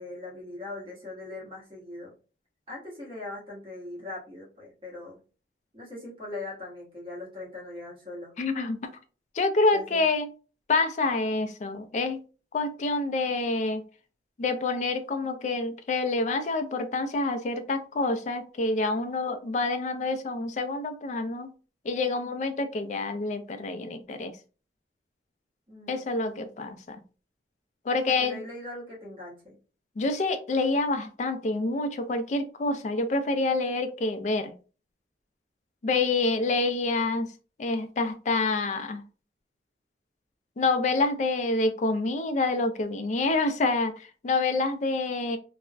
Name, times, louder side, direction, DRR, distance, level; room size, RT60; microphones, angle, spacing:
voice 1, 0.0-2.1 2.7-5.2 5.7-8.3 9.7-10.1 25.7-26.5 28.0-29.6, left 2 dB, 30° right, -3 dB, 1.1 m, -40 dB
voice 2, 8.4-8.9 9.3-10.3 10.7-12.2 12.5-13.8 14.4-21.5 21.8-24.3 25.9-27.0 27.9-28.4 30.0-34.5 35.8-37.3 37.6-39.0 40.6-45.4, left 3 dB, 40° left, 8 dB, 0.3 m, -27 dB
3.3 x 2.0 x 2.3 m, 0.36 s
head